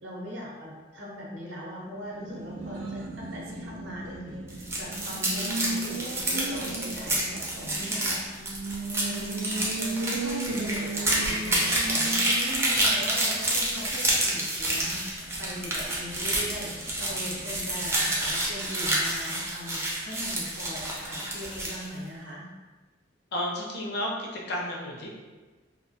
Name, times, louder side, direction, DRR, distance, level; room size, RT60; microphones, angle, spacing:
voice 1, 0.0-8.2 9.0-22.5, equal, 65° right, -4 dB, 0.7 m, -40 dB
Race car auto racing, 2.0-18.3, right 2 dB, 90° right, 0.3 m, -38 dB
sound 1, 4.5-21.9, right 1 dB, 15° right, 0.4 m, -28 dB
voice 2, 23.3-25.1, left 1 dB, 60° left, -2 dB, 0.5 m, -32 dB
2.2 x 2.1 x 2.6 m, 1.3 s
head